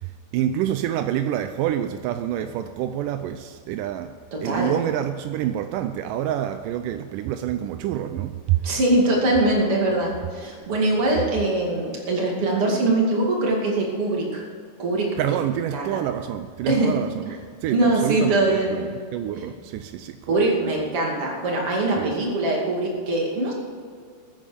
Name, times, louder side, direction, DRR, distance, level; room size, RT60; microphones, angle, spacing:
voice 1, 0.0-4.1 4.4-8.6 15.2-20.4 22.0-22.2, right 11 dB, 85° right, 2.2 m, -27 dB
voice 2, 4.3-4.7 8.6-14.4 14.8-15.3 15.7-16.0 16.7-16.9 17.7-18.8 19.4-19.5 20.3-23.5, right 2 dB, 45° right, 3.3 m, -22 dB
21.0 x 9.1 x 5.2 m
omnidirectional pair, 3.8 m